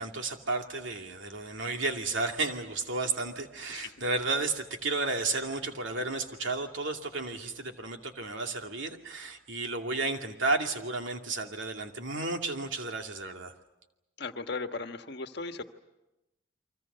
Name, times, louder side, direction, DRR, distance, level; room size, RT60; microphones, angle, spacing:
voice 1, 0.0-13.5, right 3 dB, 75° right, 4 dB, 2.5 m, -32 dB
voice 2, 14.2-15.6, left 3 dB, 55° left, 7 dB, 1.4 m, -37 dB
30.0 x 24.0 x 6.8 m, 0.96 s
head